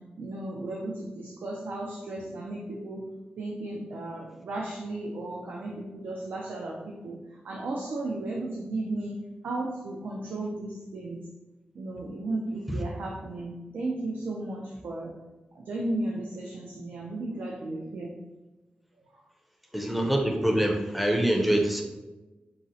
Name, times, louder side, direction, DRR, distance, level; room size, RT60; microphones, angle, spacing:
voice 1, 0.2-3.1 3.4-9.2 9.4-11.2 11.8-15.1 15.6-18.1, right 2 dB, 85° right, -1 dB, 0.4 m, -34 dB
voice 2, 19.7-21.8, right 1 dB, ahead, 2 dB, 0.4 m, -25 dB
3.9 x 2.0 x 2.6 m, 1.1 s
wide cardioid pair, 90°, 3 cm